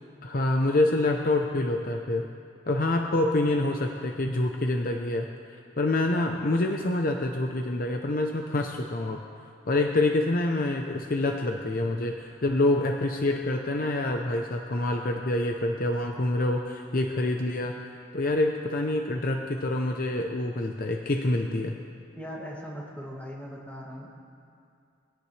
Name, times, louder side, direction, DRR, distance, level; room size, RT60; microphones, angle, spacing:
voice 1, 0.2-2.3 2.7-5.3 5.8-9.2 9.7-17.8 18.1-21.7, left 2 dB, 50° left, 3 dB, 0.8 m, -26 dB
voice 2, 22.1-24.1, equal, 10° left, -4 dB, 2.5 m, -39 dB
21.5 x 17.5 x 3.4 m, 2.4 s
head